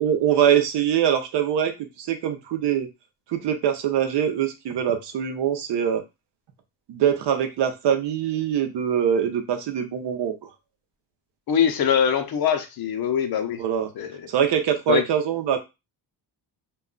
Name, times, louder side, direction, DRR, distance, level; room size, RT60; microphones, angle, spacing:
voice 1, 0.0-2.9 3.3-6.0 6.9-10.3 13.6-13.9 14.3-15.6, right 9 dB, 70° right, 6 dB, 0.7 m, -23 dB
voice 2, 11.5-13.6 14.0-14.2 14.9-15.0, left 7 dB, 55° left, 7 dB, 0.6 m, -22 dB
2.3 x 2.2 x 3.7 m, 0.25 s
cardioid pair, 145°, 43 cm